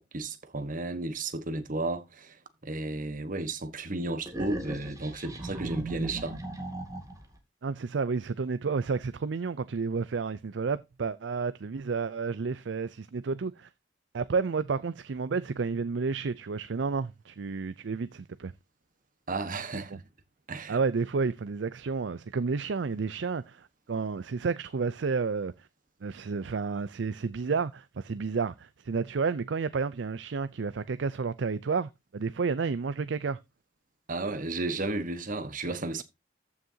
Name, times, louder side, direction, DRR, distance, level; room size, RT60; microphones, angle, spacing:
voice 1, 0.1-2.4 2.6-6.4 19.3-20.0 20.5-20.8 34.1-36.0, right 2 dB, 45° right, 1.3 m, -33 dB
sound 1, 4.3-7.3, right 2 dB, 20° right, 2.2 m, -37 dB
voice 2, 7.6-13.7 14.1-18.5 20.7-25.5 26.0-33.4, right 4 dB, 70° right, 0.5 m, -31 dB
14.0 x 6.4 x 2.8 m
head